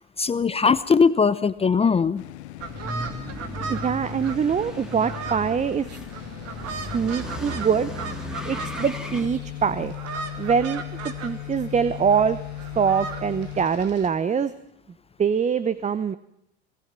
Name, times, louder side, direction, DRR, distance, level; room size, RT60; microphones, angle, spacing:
voice 1, 0.0-2.2, left 5 dB, 15° left, 16 dB, 0.8 m, -20 dB
sound 1, 2.2-13.7, left 17 dB, 75° left, 1.3 m, -38 dB
sound 2, 2.6-9.3, equal, ahead, 3.6 m, -36 dB
sound 3, 2.6-14.1, right 5 dB, 45° right, 2.9 m, -38 dB
voice 2, 3.7-5.9 6.7-7.9 8.4-9.9 10.4-12.4 12.8-14.5 15.2-16.2, right 6 dB, 20° right, 16 dB, 0.9 m, -24 dB
26.0 x 20.0 x 6.1 m, 0.78 s
hypercardioid pair, 85°, 34 cm